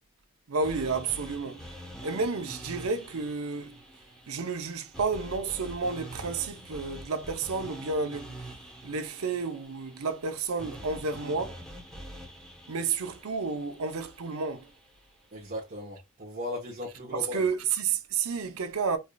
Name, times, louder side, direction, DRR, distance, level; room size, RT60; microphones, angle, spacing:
voice 1, 0.5-1.7 2.0-3.8 4.3-8.4 8.8-11.6 12.7-14.7 17.3-19.0, right 4 dB, 75° right, 0.6 m, -31 dB
sound 1, 0.6-14.8, right 1 dB, ahead, 1.0 m, -45 dB
voice 2, 15.3-17.4, left 1 dB, 40° right, 1.0 m, -37 dB
4.7 x 2.6 x 2.3 m
head